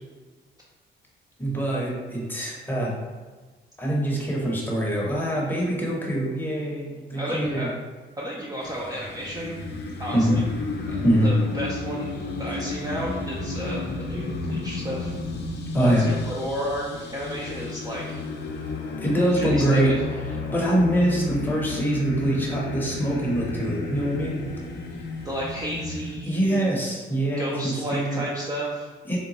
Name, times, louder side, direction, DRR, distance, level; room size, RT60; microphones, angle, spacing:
voice 1, 1.4-2.9 3.8-7.7 10.1-10.4 11.0-11.3 15.7-16.0 19.0-19.9 20.5-24.4 26.2-28.2 29.1-29.2, right 1 dB, 10° left, -3 dB, 0.8 m, -24 dB
voice 2, 7.2-7.7 8.2-9.6 10.0-10.4 10.9-15.2 15.8-18.2 19.3-19.9 25.2-26.7 27.4-28.9, equal, 20° right, -4 dB, 0.4 m, -32 dB
sound 1, 8.6-26.2, left 3 dB, 60° left, 0.5 m, -32 dB
3.8 x 2.2 x 2.8 m, 1.3 s
cardioid pair, 110°, 19 cm